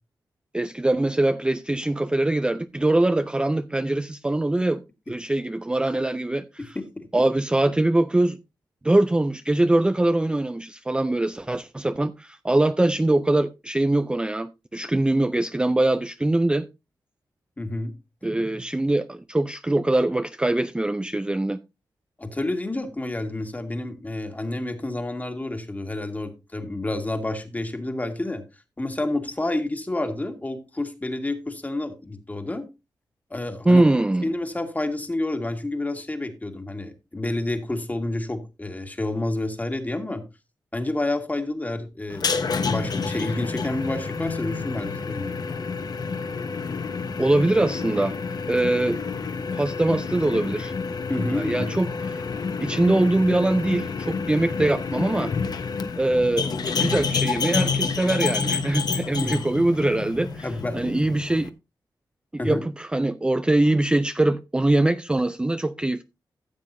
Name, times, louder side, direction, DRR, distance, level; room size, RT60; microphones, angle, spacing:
voice 1, 0.5-4.8 5.1-6.8 7.1-8.4 8.8-16.7 18.2-21.6 33.7-34.3 47.2-48.1 48.5-49.0 49.5-50.7 51.3-52.2 52.6-55.3 56.0-60.5 60.7-61.5 62.4-66.0, right 2 dB, 10° right, 0.4 m, -22 dB
voice 2, 6.7-7.1 17.6-17.9 22.2-28.4 28.8-32.7 33.3-33.8 34.2-40.2 40.7-45.4 51.1-51.7 59.2-59.4 60.4-61.2 62.4-62.6, left 2 dB, 20° left, 1.7 m, -29 dB
sound 1, 42.1-61.5, left 5 dB, 60° left, 1.0 m, -29 dB
14.5 x 7.4 x 2.6 m
cardioid pair, 80°, 8 cm